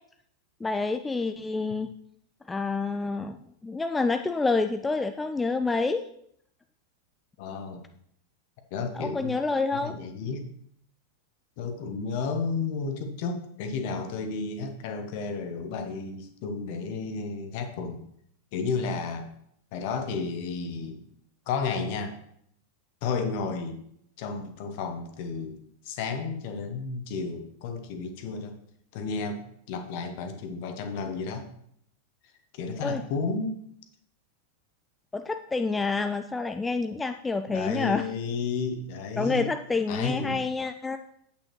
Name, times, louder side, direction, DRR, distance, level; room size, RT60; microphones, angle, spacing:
voice 1, 0.6-1.9 2.5-3.4 3.6-6.1 8.9-9.9 32.8-33.0 35.1-38.1 39.2-41.0, left 3 dB, 10° left, 8 dB, 0.3 m, -28 dB
voice 2, 7.4-7.8 8.7-9.4 9.8-10.5 11.6-18.0 18.5-19.3 19.7-21.0 21.5-22.2 23.0-23.8 24.2-28.6 28.9-31.5 32.5-33.6 37.5-39.5 39.9-40.4, left 4 dB, 50° left, 6 dB, 1.2 m, -32 dB
8.5 x 8.4 x 3.1 m, 0.70 s
figure-of-eight pair, 90°, 0 cm